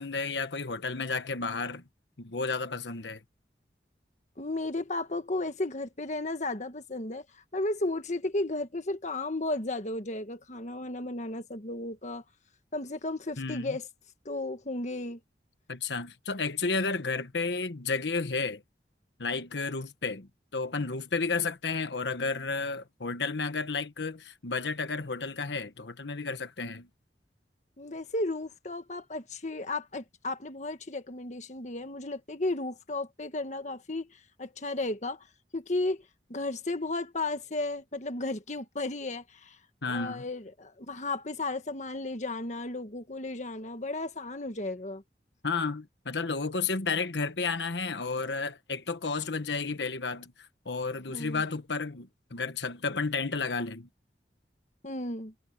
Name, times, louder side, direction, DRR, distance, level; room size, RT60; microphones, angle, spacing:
voice 1, 0.0-1.8 2.2-3.2 13.4-13.7 15.7-18.6 19.2-26.9 39.8-40.3 45.4-50.3 50.6-53.9, left 4 dB, 85° left, 1.2 m, -32 dB
voice 2, 4.4-7.2 7.5-12.2 12.7-13.9 14.2-15.2 27.8-35.2 35.5-36.0 36.3-39.6 39.9-45.0 51.1-51.4 54.8-55.3, left 2 dB, 45° left, 1.5 m, -34 dB
head